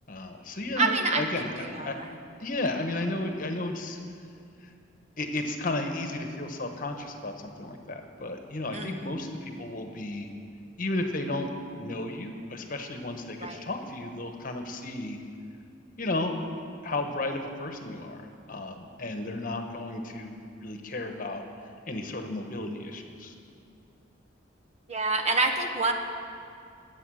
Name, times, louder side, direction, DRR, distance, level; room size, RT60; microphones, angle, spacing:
voice 1, 0.1-1.9 2.4-4.0 4.6-4.7 5.2-10.3 10.8-11.5 11.8-15.2 16.0-16.3 16.8-18.2 18.5-21.4 21.9-23.3, left 2 dB, 45° left, 5 dB, 1.3 m, -33 dB
voice 2, 0.8-2.1 8.7-9.1 13.4-13.6 24.9-25.9, right 3 dB, 35° right, 4 dB, 1.1 m, -27 dB
21.0 x 8.4 x 6.4 m, 2.4 s
head